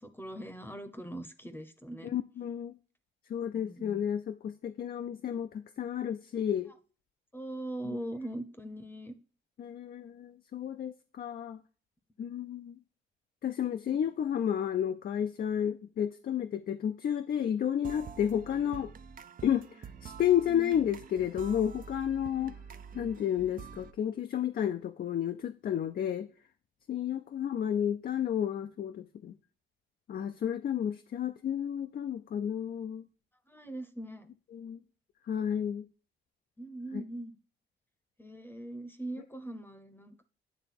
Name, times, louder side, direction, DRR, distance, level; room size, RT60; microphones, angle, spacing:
voice 1, 0.0-2.1 3.5-4.0 5.1-5.2 7.3-9.1 12.3-12.4 20.5-20.7 22.3-22.5 33.5-34.3 36.6-37.4 38.2-40.2, right 1 dB, 10° left, 0.8 m, -41 dB
voice 2, 2.0-2.8 3.3-6.7 7.9-8.0 9.6-11.6 12.2-12.8 13.4-18.9 19.4-22.6 22.9-26.3 26.9-29.3 30.1-33.0 34.5-34.8 35.3-35.8 36.9-37.0, left 9 dB, 50° left, 0.5 m, -31 dB
sound 1, 17.8-23.9, right 7 dB, 45° right, 0.5 m, -47 dB
9.1 x 3.3 x 4.2 m
cardioid pair, 90°, 20 cm